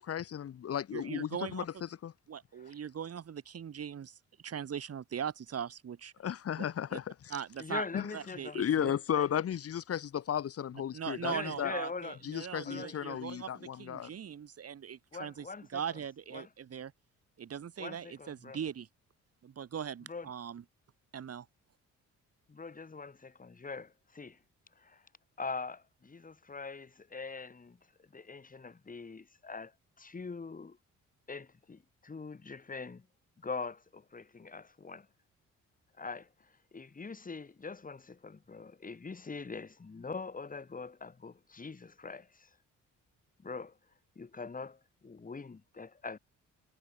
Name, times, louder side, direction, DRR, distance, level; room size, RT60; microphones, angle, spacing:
voice 1, 0.0-2.1 6.2-7.3 7.9-8.1 8.5-11.7 12.2-14.1, left 9 dB, 50° left, 1.4 m, -34 dB
voice 2, 0.9-1.7 2.3-4.1 4.4-6.1 6.6-7.0 7.3-7.8 8.1-8.9 10.9-15.5 15.7-16.9 17.4-18.9 19.4-20.6 21.1-21.5, right 8 dB, 50° right, 4.1 m, -40 dB
voice 3, 7.6-9.3 11.2-12.2 12.6-13.2 15.1-16.0 16.3-16.5 17.8-18.6 20.1-20.3 22.5-24.4 24.8-25.1 25.4-30.8 31.3-33.1 33.4-35.1 36.0-42.6 43.4-43.8 44.2-46.2, left 4 dB, 25° left, 3.7 m, -43 dB
cardioid pair, 90°, 30 cm